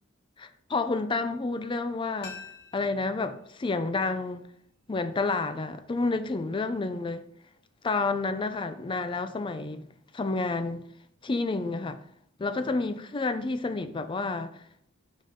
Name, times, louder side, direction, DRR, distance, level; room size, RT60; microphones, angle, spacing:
voice 1, 0.4-2.4 2.7-4.4 4.9-7.2 7.8-9.8 10.1-10.8 11.2-12.0 12.4-14.6, left 3 dB, 25° left, 0.4 m, -29 dB
sound 1, 2.2-5.0 5.3-5.4, left 5 dB, 55° left, 1.2 m, -49 dB
5.4 x 5.3 x 3.7 m
head